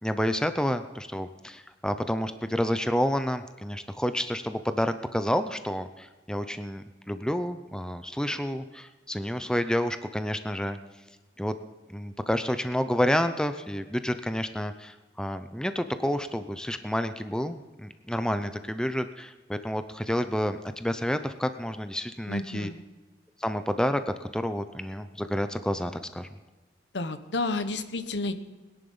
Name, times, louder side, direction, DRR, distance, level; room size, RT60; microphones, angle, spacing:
voice 1, 0.0-10.8 11.4-11.5 11.9-22.7 23.4-26.3, equal, 5° left, 10 dB, 0.6 m, -29 dB
voice 2, 22.3-22.8 26.9-28.3, left 3 dB, 85° left, 11 dB, 1.1 m, -31 dB
20.5 x 11.0 x 5.5 m, 1.3 s
head